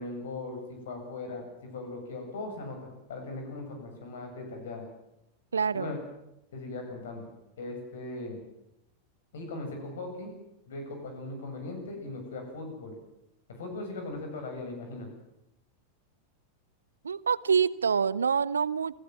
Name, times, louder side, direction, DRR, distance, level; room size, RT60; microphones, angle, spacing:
voice 1, 0.0-4.8 5.7-6.0 6.5-7.3 7.6-8.4 9.3-10.3 10.7-13.0 13.5-15.1, left 2 dB, 60° left, 4 dB, 7.7 m, -39 dB
voice 2, 5.5-6.0 17.0-19.0, right 6 dB, 70° right, 20 dB, 0.8 m, -26 dB
29.0 x 17.0 x 7.7 m, 0.86 s
figure-of-eight pair, 90°, 0 cm